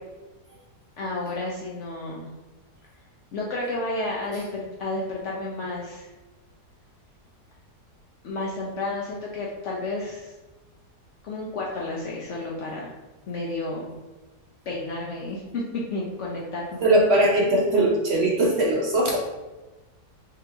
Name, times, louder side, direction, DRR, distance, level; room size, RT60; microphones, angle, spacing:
voice 1, 1.0-2.3 3.3-6.1 8.2-10.3 11.2-12.9 13.3-13.9 14.7-15.6 15.9-16.8, left 2 dB, 65° left, -4 dB, 0.7 m, -31 dB
voice 2, 16.8-19.2, right 1 dB, 70° right, -2 dB, 0.6 m, -20 dB
3.7 x 2.8 x 3.4 m, 1.1 s
omnidirectional pair, 1.8 m